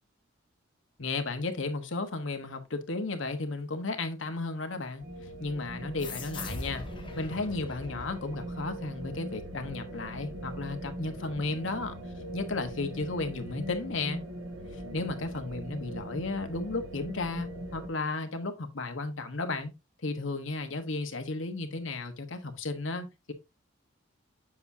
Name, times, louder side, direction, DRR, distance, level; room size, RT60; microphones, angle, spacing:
voice 1, 1.0-5.1 5.4-6.8 7.2-12.0 12.3-14.3 14.9-19.7 20.0-23.3, left 3 dB, 70° left, 1.2 m, -34 dB
sound 1, 5.0-17.9, right 1 dB, 75° right, 1.7 m, -41 dB
sound 2, 6.0-9.0, left 3 dB, 25° left, 1.3 m, -42 dB
7.8 x 6.0 x 2.7 m
head